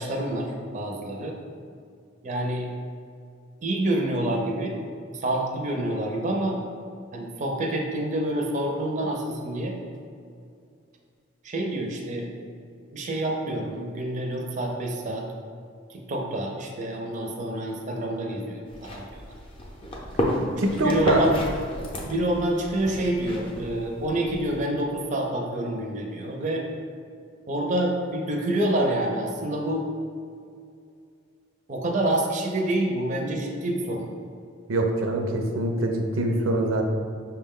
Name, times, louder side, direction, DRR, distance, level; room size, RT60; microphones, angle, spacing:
voice 1, 0.0-1.4 2.2-2.7 3.6-4.8 5.1-6.6 7.1-9.8 11.4-12.3 12.9-15.3 15.9-19.2 20.8-21.3 22.0-26.6 27.5-29.9 31.7-34.1, right 1 dB, 40° right, 1 dB, 0.4 m, -27 dB
sound 1, 18.6-24.6, equal, 30° left, 0.5 m, -32 dB
voice 2, 20.6-21.2 34.7-36.8, right 2 dB, 90° right, 3 dB, 0.5 m, -24 dB
5.7 x 2.2 x 3.6 m, 2.4 s
head